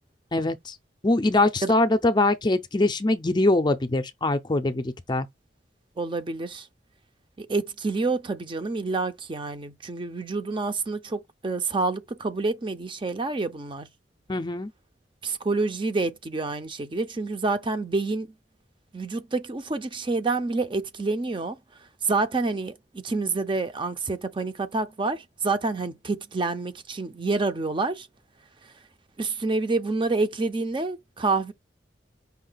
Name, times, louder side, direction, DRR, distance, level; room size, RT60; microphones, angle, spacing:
voice 1, 0.3-0.8 1.0-5.3 14.3-14.7, left 2 dB, 25° left, 0.5 m, -23 dB
voice 2, 6.0-6.7 7.4-13.9 15.2-18.3 18.9-21.6 22.0-28.1 29.2-31.5, right 3 dB, 30° right, 0.5 m, -28 dB
5.6 x 2.2 x 3.9 m
head